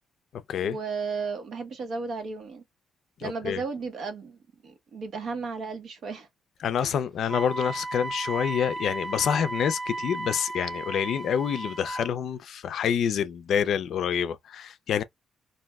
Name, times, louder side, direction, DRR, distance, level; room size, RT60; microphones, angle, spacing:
voice 1, 0.5-2.6 3.2-6.3 6.8-6.9, right 4 dB, 60° right, 0.8 m, -34 dB
voice 2, 3.2-3.6 6.6-15.0, left 8 dB, 65° left, 0.4 m, -27 dB
Wind instrument woodwind instrument, 7.3-12.1, right 2 dB, 15° right, 0.4 m, -35 dB
2.6 x 2.1 x 3.4 m
cardioid pair, 145°, 0 cm